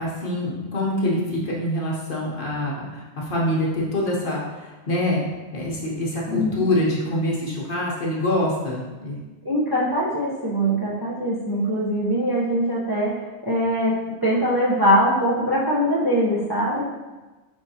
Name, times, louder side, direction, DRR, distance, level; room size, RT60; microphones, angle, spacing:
voice 1, 0.0-5.3 5.5-9.2, left 1 dB, 50° left, -4 dB, 0.9 m, -25 dB
voice 2, 6.3-6.6 9.4-13.1 13.4-16.8, equal, 25° right, -8 dB, 0.6 m, -22 dB
5.3 x 3.3 x 2.7 m, 1.2 s
omnidirectional pair, 1.3 m